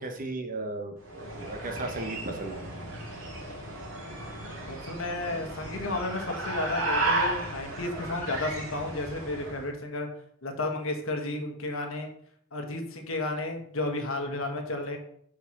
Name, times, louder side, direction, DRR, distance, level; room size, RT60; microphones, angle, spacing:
voice 1, 0.0-2.7, right 2 dB, 40° right, 5 dB, 1.0 m, -35 dB
sound 1, 1.0-9.7, right 2 dB, 75° right, 2.3 m, -34 dB
voice 2, 4.7-10.1 10.4-12.1 12.5-15.0, left 2 dB, 75° left, 3 dB, 1.4 m, -32 dB
4.9 x 4.6 x 5.9 m, 0.66 s
head